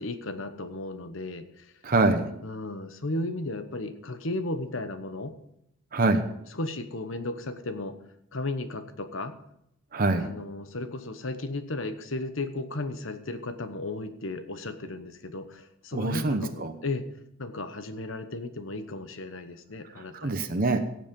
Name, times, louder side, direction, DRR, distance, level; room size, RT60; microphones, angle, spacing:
voice 1, 0.0-1.7 2.4-5.3 6.5-8.0 8.3-9.4 10.2-17.0 17.4-20.5, left 2 dB, 70° left, 10 dB, 1.1 m, -35 dB
voice 2, 1.8-2.3 5.9-6.2 9.9-10.3 15.9-16.7 20.0-20.8, right 3 dB, 45° right, 6 dB, 0.9 m, -25 dB
16.5 x 7.4 x 5.3 m, 0.77 s
head